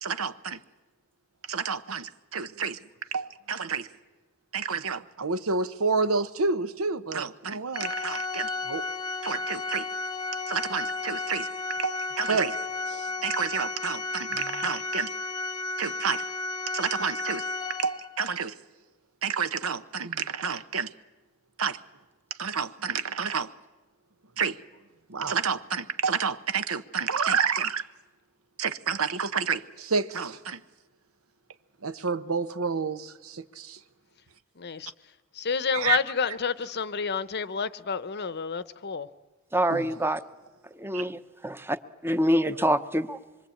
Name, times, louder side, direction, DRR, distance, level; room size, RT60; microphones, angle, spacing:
voice 1, 0.0-0.6 1.5-2.8 3.1-3.9 4.5-8.8 9.2-9.9 10.5-11.5 11.8-12.6 12.9-15.1 15.8-16.2 16.7-17.4 17.8-18.5 19.2-20.9 21.6-21.8 22.4-23.5 24.4-24.6 25.1-27.8 28.6-30.6 31.8-33.8 35.7-36.0 39.7-39.9 40.9-41.0, right 5 dB, 85° right, 1.0 m, -29 dB
Organ, 7.7-18.3, left 3 dB, 20° left, 0.9 m, -33 dB
voice 2, 34.6-34.9 35.3-39.1, left 6 dB, 50° left, 0.8 m, -29 dB
voice 3, 39.5-40.2 40.8-41.8 42.0-43.2, equal, 10° right, 0.8 m, -26 dB
25.5 x 23.5 x 8.5 m
head